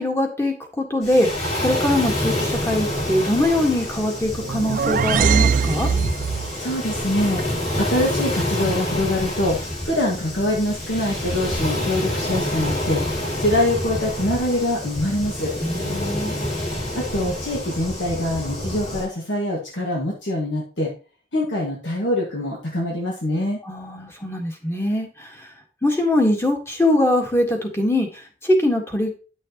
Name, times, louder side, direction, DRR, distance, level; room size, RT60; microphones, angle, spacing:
voice 1, 0.0-5.9 15.6-16.3 23.6-25.5 25.8-29.2, left 1 dB, 15° left, 2 dB, 1.5 m, -22 dB
Waves surf, 1.0-19.1, left 1 dB, 35° left, 2.6 m, -27 dB
sound 1, 4.3-6.6, right 6 dB, 45° right, 0.3 m, -21 dB
voice 2, 6.6-13.0 13.4-15.5 16.9-20.9 21.3-23.6, left 1 dB, 80° left, -2 dB, 1.8 m, -24 dB
10.0 x 6.4 x 2.9 m, 0.36 s
head